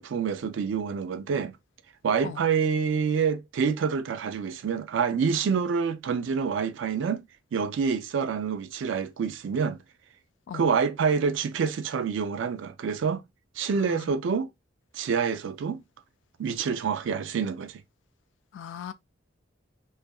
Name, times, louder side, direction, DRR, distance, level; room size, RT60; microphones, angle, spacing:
voice 1, 0.0-1.6 2.0-7.2 7.5-9.8 10.5-13.2 13.6-14.5 14.9-15.8 16.4-17.8, right 6 dB, 80° right, 0.3 m, -27 dB
voice 2, 18.5-18.9, left 8 dB, 75° left, 0.3 m, -39 dB
2.7 x 2.4 x 2.2 m
head